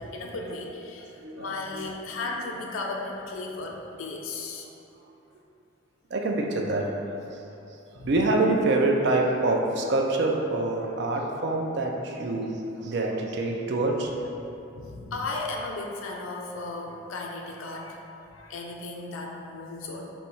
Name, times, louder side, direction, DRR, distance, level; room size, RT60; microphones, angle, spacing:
voice 1, 0.0-4.7 7.9-8.1 14.7-18.0 18.3-20.2, left 3 dB, 90° left, 0 dB, 0.4 m, -35 dB
voice 2, 1.1-2.0 6.1-7.4 8.0-14.3, right 2 dB, 55° right, 1 dB, 0.4 m, -26 dB
4.0 x 2.3 x 4.3 m, 2.8 s
head